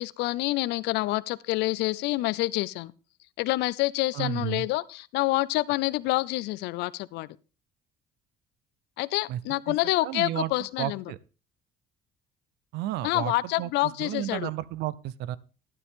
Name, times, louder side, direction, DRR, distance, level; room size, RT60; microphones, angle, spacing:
voice 1, 0.0-2.9 3.4-7.3 9.0-11.0 13.0-14.5, left 19 dB, 90° left, 0.5 m, -27 dB
voice 2, 4.1-4.7 9.3-9.4 9.7-9.8 10.0-10.5 10.8-11.2 12.7-15.4, right 14 dB, 85° right, 0.7 m, -32 dB
12.0 x 9.8 x 3.7 m
cardioid pair, 110°, 17 cm